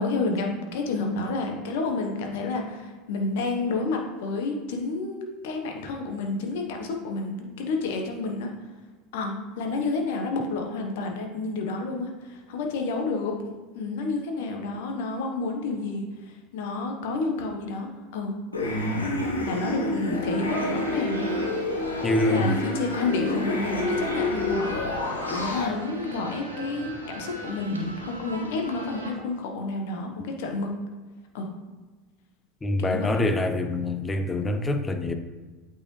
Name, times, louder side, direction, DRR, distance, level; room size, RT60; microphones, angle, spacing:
voice 1, 0.0-8.5 9.1-13.4 13.7-16.0 16.5-18.3 19.4-21.3 22.0-30.7 31.3-31.5 32.8-33.2, left 3 dB, 65° left, 2 dB, 1.1 m, -30 dB
sound 1, 18.5-25.7, left 2 dB, 90° left, 1.0 m, -28 dB
sound 2, 20.4-29.1, right 2 dB, 85° right, 1.0 m, -38 dB
voice 2, 22.0-22.5 32.6-35.1, left 2 dB, 15° left, 7 dB, 0.6 m, -25 dB
8.4 x 4.7 x 3.2 m, 1.3 s
figure-of-eight pair, 80°, 0 cm